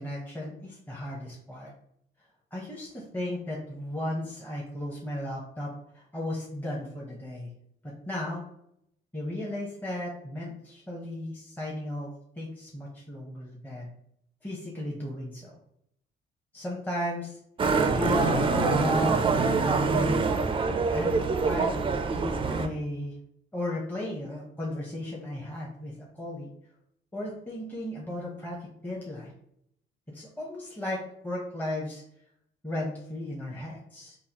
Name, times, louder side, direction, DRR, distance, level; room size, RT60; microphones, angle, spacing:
voice 1, 0.0-1.7 2.5-7.5 7.8-8.4 9.1-13.9 14.4-15.5 16.5-17.4 17.8-20.2 20.9-23.1 23.5-26.5 27.1-29.3 30.1-32.0 32.6-34.2, left 1 dB, 10° left, -4 dB, 0.7 m, -35 dB
Motorcycle, 17.6-22.7, right 4 dB, 25° right, 0.4 m, -25 dB
3.7 x 2.4 x 2.8 m, 0.74 s
cardioid pair, 90°, 20 cm